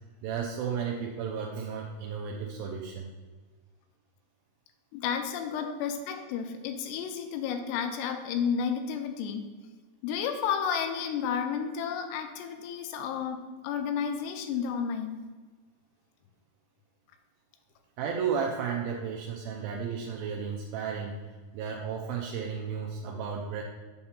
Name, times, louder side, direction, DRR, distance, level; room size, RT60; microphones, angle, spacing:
voice 1, 0.2-3.1 5.5-5.6 18.0-21.2 21.5-23.6, right 6 dB, 85° right, 1 dB, 2.1 m, -33 dB
voice 2, 4.9-9.5 10.0-15.3, left 7 dB, 90° left, 6 dB, 2.7 m, -32 dB
7.4 x 2.9 x 5.6 m, 1.3 s
omnidirectional pair, 4.8 m